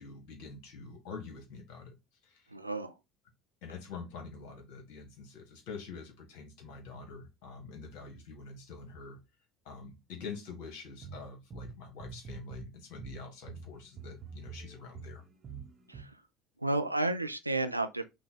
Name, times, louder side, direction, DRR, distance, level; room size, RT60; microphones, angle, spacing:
voice 1, 0.0-1.9 2.2-2.5 3.6-9.2 9.6-15.2, left 4 dB, 60° left, 1.4 m, -46 dB
voice 2, 2.5-2.9 15.9-16.2 16.6-18.1, right 2 dB, 90° right, 0.4 m, -32 dB
sound 1, 11.0-12.7 13.0-16.0, right 4 dB, 35° right, 0.9 m, -45 dB
5.6 x 2.3 x 3.8 m
figure-of-eight pair, 60°, 0 cm